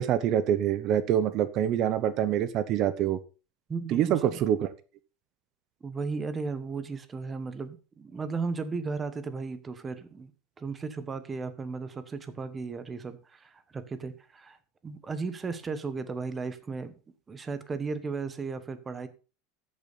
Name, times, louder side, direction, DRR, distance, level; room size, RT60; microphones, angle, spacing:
voice 1, 0.0-3.2 3.9-4.7, right 10 dB, 35° right, 0.8 m, -25 dB
voice 2, 3.7-4.4 5.8-10.3 10.6-14.6 14.8-16.9 17.3-19.1, right 4 dB, 15° right, 1.1 m, -35 dB
13.5 x 8.7 x 4.1 m
supercardioid pair, 165°, 0 cm